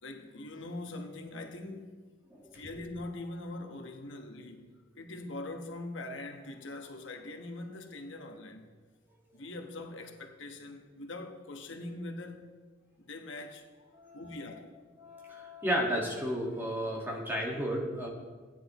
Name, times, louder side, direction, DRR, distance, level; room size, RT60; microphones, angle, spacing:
voice 1, 0.0-1.9 2.5-8.7 9.3-12.5 13.0-14.7, left 2 dB, 80° left, 1.1 m, -42 dB
voice 2, 15.0-18.1, equal, 10° right, 1.6 m, -33 dB
16.0 x 10.0 x 3.0 m
head